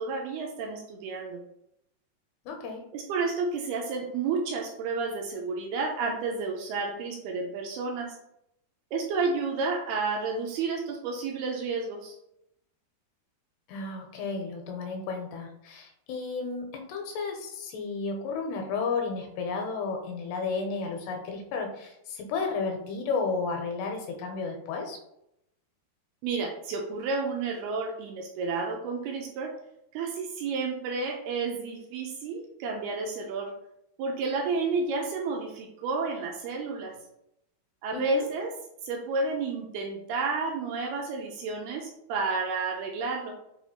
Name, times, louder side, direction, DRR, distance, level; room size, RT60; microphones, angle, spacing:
voice 1, 0.0-1.4 2.9-8.2 8.9-12.1 26.2-29.5 29.9-33.5 34.0-36.9 37.8-38.5 38.8-43.4, right 4 dB, 80° right, 0 dB, 2.4 m, -31 dB
voice 2, 2.5-2.8 13.7-25.0 37.9-38.3, left 4 dB, 90° left, 3 dB, 2.8 m, -33 dB
6.8 x 2.4 x 2.9 m, 0.79 s
omnidirectional pair, 4.8 m